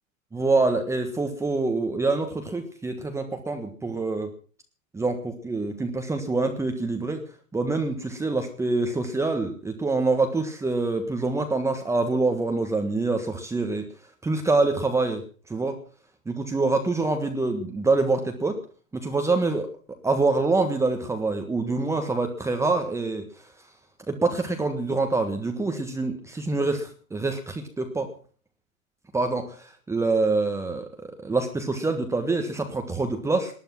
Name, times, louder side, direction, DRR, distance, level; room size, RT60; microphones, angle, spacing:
voice 1, 0.3-4.3 4.9-7.2 7.5-13.8 14.2-15.2 15.5-15.7 16.3-18.6 18.9-19.7 20.0-23.2 24.1-28.1 29.1-33.5, right 3 dB, 5° right, 5 dB, 1.5 m, -25 dB
19.5 x 11.5 x 6.0 m, 0.43 s
hypercardioid pair, 120°, 42 cm